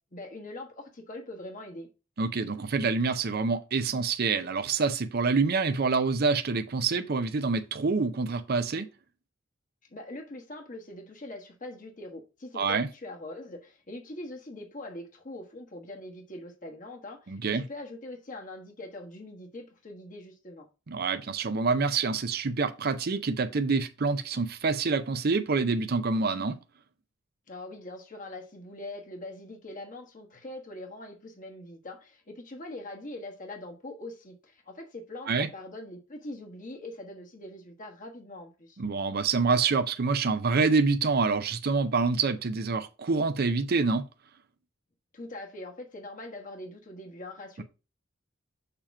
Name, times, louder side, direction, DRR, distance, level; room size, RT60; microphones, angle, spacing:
voice 1, 0.1-1.9 9.9-20.6 27.5-38.8 45.1-47.6, left 1 dB, 40° left, 1.3 m, -42 dB
voice 2, 2.2-8.9 12.6-12.9 17.3-17.6 20.9-26.6 35.3-35.5 38.8-44.1, right 4 dB, 50° right, 0.6 m, -26 dB
6.8 x 2.9 x 5.7 m
head